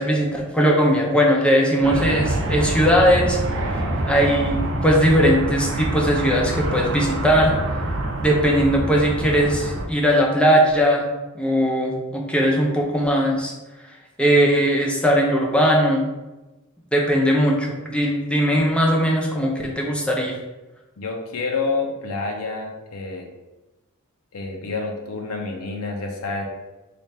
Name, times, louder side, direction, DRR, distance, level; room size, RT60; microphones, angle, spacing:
voice 1, 0.0-3.4 3.7-7.6 8.2-11.1 11.3-13.5 14.2-16.1 16.9-20.4, equal, 5° left, -1 dB, 0.5 m, -19 dB
sound 1, 1.8-9.9, right 1 dB, 65° right, 0.5 m, -26 dB
voice 2, 21.0-23.3 24.3-26.5, left 3 dB, 70° left, 1 dB, 0.6 m, -28 dB
3.3 x 2.5 x 4.2 m, 1.1 s
head